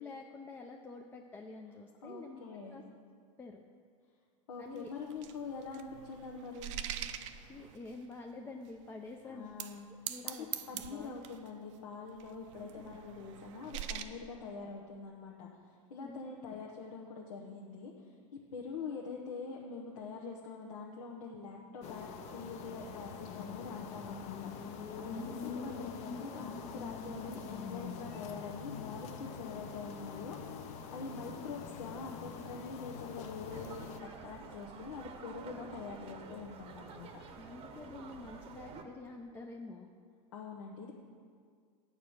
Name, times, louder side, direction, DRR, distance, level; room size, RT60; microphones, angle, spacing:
voice 1, 0.0-2.8 3.4-3.7 4.6-4.9 7.5-9.6 10.1-10.5 10.9-11.1 12.7-13.0 16.0-16.3 25.2-25.4 37.4-39.9, left 3 dB, 10° left, 1 dB, 0.4 m, -48 dB
voice 2, 2.0-2.8 4.5-6.7 9.2-9.9 10.3-10.4 10.7-15.5 15.9-17.9 18.5-33.9 34.2-37.2 40.3-40.9, left 4 dB, 85° left, -1 dB, 1.0 m, -44 dB
sound 1, 4.8-8.1 8.7-8.8 9.4-9.8 10.1-11.5 12.2-14.0, right 11 dB, 60° right, 0.5 m, -43 dB
sound 2, 21.8-34.0, left 5 dB, 40° left, 0.7 m, -44 dB
sound 3, 33.5-38.8, right 5 dB, 35° right, 0.8 m, -50 dB
9.1 x 4.8 x 7.1 m, 2.1 s
supercardioid pair, 130°, 17 cm